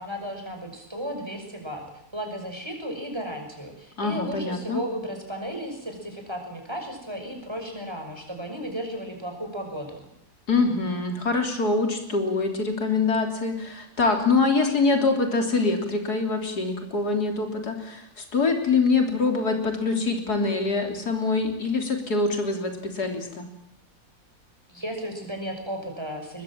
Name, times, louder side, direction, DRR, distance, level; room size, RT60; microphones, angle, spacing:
voice 1, 0.0-1.8 2.1-10.1 24.7-26.4, equal, 15° right, 3 dB, 6.3 m, -34 dB
voice 2, 4.0-4.8 10.5-23.5, left 3 dB, 80° left, 4 dB, 4.0 m, -24 dB
23.5 x 21.5 x 7.5 m, 0.76 s
omnidirectional pair, 1.7 m